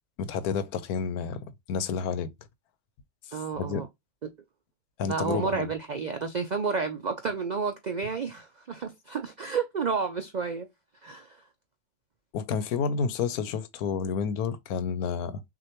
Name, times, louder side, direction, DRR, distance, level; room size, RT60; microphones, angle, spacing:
voice 1, 0.2-1.4 1.7-2.3 3.3-3.8 5.0-5.7 12.3-15.4, left 6 dB, 90° left, 1.2 m, -30 dB
voice 2, 3.3-3.9 5.1-10.7 11.0-11.4, right 5 dB, 80° right, 0.4 m, -31 dB
6.2 x 2.5 x 2.9 m
omnidirectional pair, 1.5 m